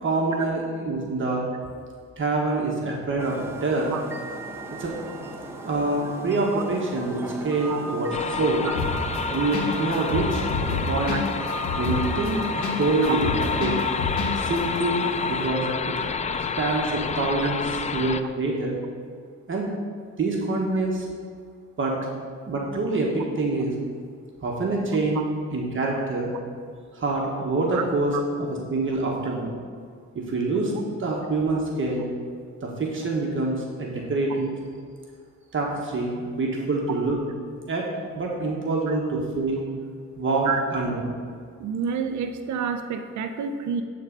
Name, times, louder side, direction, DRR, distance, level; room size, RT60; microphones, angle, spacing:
voice 1, 0.0-1.5 2.2-3.9 4.8-4.9 5.6-8.7 9.3-11.1 11.7-13.7 14.4-16.1 16.6-18.8 19.5-19.7 20.2-21.1 21.8-22.0 22.5-23.7 24.4-25.2 25.5-26.3 26.9-29.5 30.1-30.7 31.0-32.0 32.6-34.5 35.5-37.2 37.7-37.8 38.1-39.6 40.2-41.0, right 2 dB, 40° right, -2 dB, 1.5 m, -26 dB
sound 1, 3.2-15.5, right 2 dB, 10° right, 0.9 m, -37 dB
sound 2, 8.1-18.2, left 5 dB, 25° left, 0.4 m, -29 dB
sound 3, 8.7-9.2 9.5-9.7 9.9-12.8 13.0-14.3 14.6-14.7, left 5 dB, 85° left, 1.5 m, -29 dB
voice 2, 41.6-43.8, right 6 dB, 70° right, 7 dB, 0.8 m, -29 dB
11.0 x 4.0 x 5.4 m, 2.1 s
cardioid pair, 90°, 30 cm